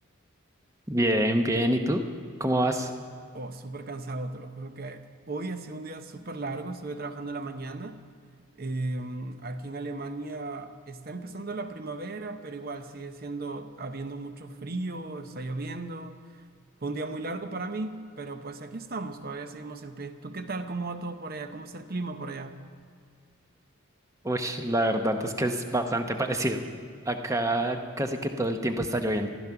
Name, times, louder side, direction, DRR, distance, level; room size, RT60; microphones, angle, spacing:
voice 1, 0.9-2.0 2.4-2.9 24.2-26.6 27.1-29.3, right 1 dB, 15° right, 6 dB, 0.7 m, -26 dB
voice 2, 3.3-8.0 8.6-16.4 16.8-22.6, right 2 dB, 45° right, 9 dB, 0.8 m, -36 dB
14.5 x 12.5 x 5.8 m, 2.1 s
head